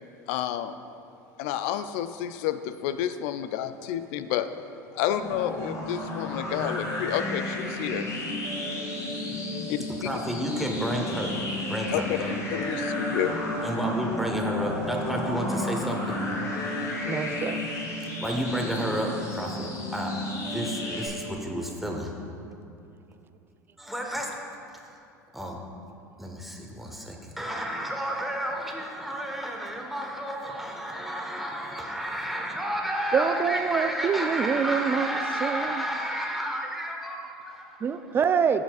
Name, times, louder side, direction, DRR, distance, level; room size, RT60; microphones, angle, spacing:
voice 1, 0.3-0.8 1.4-4.5 4.9-8.1 9.7-9.9 11.9-12.2 12.5-13.4, left 11 dB, 60° left, 11 dB, 0.4 m, -30 dB
sound 1, 5.1-21.1, left 1 dB, 35° left, 1.8 m, -32 dB
voice 2, 10.0-11.4 11.7-12.3 13.6-16.2 18.2-20.1 20.5-22.1 23.8-24.4 24.8-25.0 25.3-25.6 26.2-38.2, right 1 dB, ahead, 0 dB, 1.1 m, -31 dB
voice 3, 17.1-17.6 33.1-35.1 35.4-35.8 37.8-38.6, right 6 dB, 25° right, 11 dB, 0.3 m, -26 dB
12.5 x 5.6 x 2.4 m, 2.6 s
hypercardioid pair, 80°, 9 cm